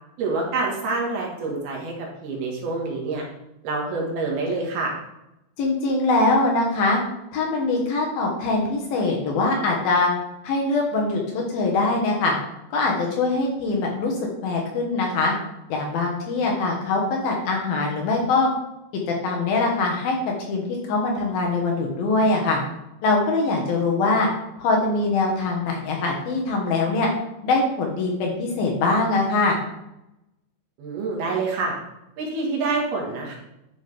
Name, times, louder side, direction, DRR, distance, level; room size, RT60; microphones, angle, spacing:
voice 1, 0.2-3.2 3.6-4.9 30.8-31.8 32.2-33.4, right 3 dB, 65° right, -1 dB, 3.3 m, -27 dB
voice 2, 5.6-7.0 7.3-10.1 10.4-12.4 12.7-15.3 15.7-18.5 19.1-20.2 20.5-22.6 23.0-24.3 24.6-27.1 27.4-29.6, left 3 dB, 65° left, -1 dB, 2.7 m, -22 dB
11.0 x 6.2 x 3.3 m, 0.88 s
omnidirectional pair, 5.0 m